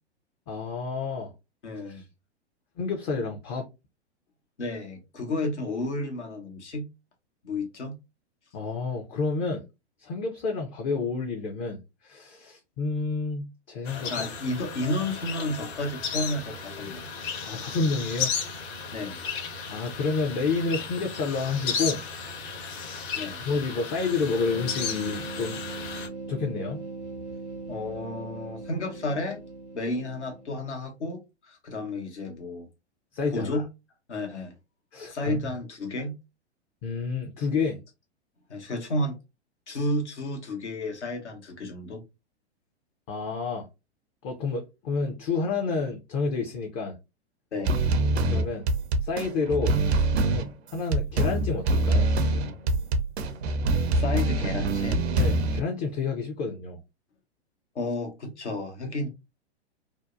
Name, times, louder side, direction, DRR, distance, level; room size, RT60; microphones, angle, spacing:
voice 1, 0.5-1.3 1.9-2.0 2.8-3.7 8.5-9.6 10.0-14.3 17.4-18.3 19.7-22.0 23.4-25.6 26.3-26.8 33.1-33.6 34.9-35.4 36.8-37.8 43.1-43.7 44.2-47.0 48.2-48.7 49.0-52.1 55.2-56.8, left 4 dB, 30° left, 0.4 m, -29 dB
voice 2, 1.6-2.0 4.6-6.9 7.4-8.0 14.1-17.1 18.9-19.2 23.2-23.4 27.7-29.4 29.7-32.7 33.3-33.6 34.1-34.5 35.1-36.1 38.5-39.2 39.7-42.0 47.5-47.8 53.9-55.1 57.7-59.1, left 2 dB, 85° left, 0.9 m, -32 dB
sound 1, 13.9-26.1, left 6 dB, 45° left, 0.8 m, -34 dB
sound 2, 24.1-30.8, right 3 dB, 85° right, 0.9 m, -40 dB
sound 3, 47.6-55.6, right 2 dB, 70° right, 0.5 m, -24 dB
2.7 x 2.0 x 2.4 m
figure-of-eight pair, 105°, 33 cm